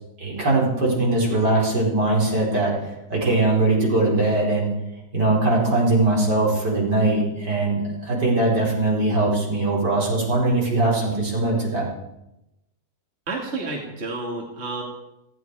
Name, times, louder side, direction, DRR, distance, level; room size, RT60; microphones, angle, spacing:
voice 1, 0.2-2.7 3.1-4.7 5.1-11.9, right 2 dB, 70° right, -3 dB, 5.2 m, -21 dB
voice 2, 13.3-14.8, right 3 dB, 40° right, 0 dB, 2.6 m, -30 dB
18.0 x 16.0 x 4.8 m, 0.90 s
omnidirectional pair, 1.9 m